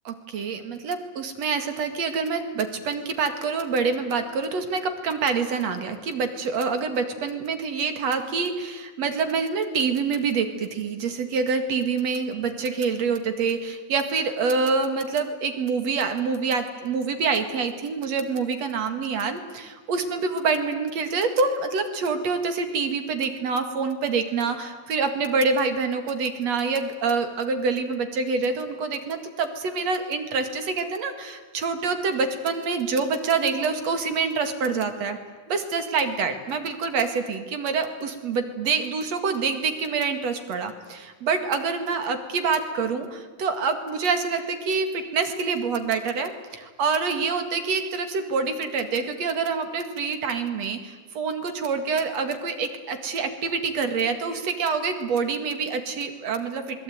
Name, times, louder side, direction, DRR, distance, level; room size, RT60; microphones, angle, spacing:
voice 1, 0.0-35.2 35.5-56.8, right 5 dB, 50° right, 8 dB, 2.8 m, -26 dB
26.5 x 21.5 x 9.4 m, 1.4 s
omnidirectional pair, 4.4 m